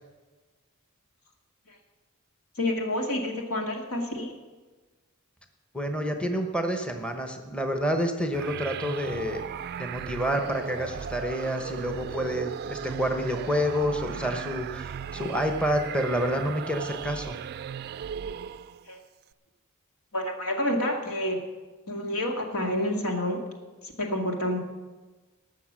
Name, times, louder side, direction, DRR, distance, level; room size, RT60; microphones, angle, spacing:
voice 1, 2.6-4.3 18.9-19.0 20.1-21.4 21.9-23.4 23.8-24.6, left 1 dB, 80° left, 1 dB, 2.2 m, -28 dB
voice 2, 5.7-9.4 9.8-17.3, equal, 5° left, 4 dB, 0.9 m, -28 dB
sound 1, 8.3-18.9, right 8 dB, 50° right, 0.3 m, -37 dB
19.5 x 6.5 x 6.2 m, 1.3 s
head